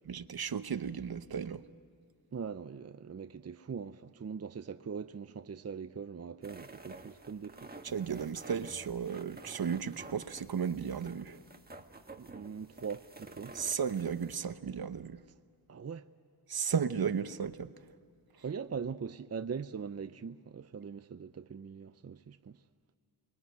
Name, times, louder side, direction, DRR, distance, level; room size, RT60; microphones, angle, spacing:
voice 1, 0.1-1.6 7.8-11.4 13.5-15.2 16.5-17.7, right 7 dB, 60° right, 0.9 m, -34 dB
voice 2, 2.3-7.7 12.2-13.6 15.7-16.1 18.4-22.6, right 6 dB, 35° right, 0.6 m, -41 dB
sound 1, 6.4-14.4, right 2 dB, 20° right, 1.6 m, -51 dB
28.5 x 22.0 x 9.3 m
wide cardioid pair, 70°, 42 cm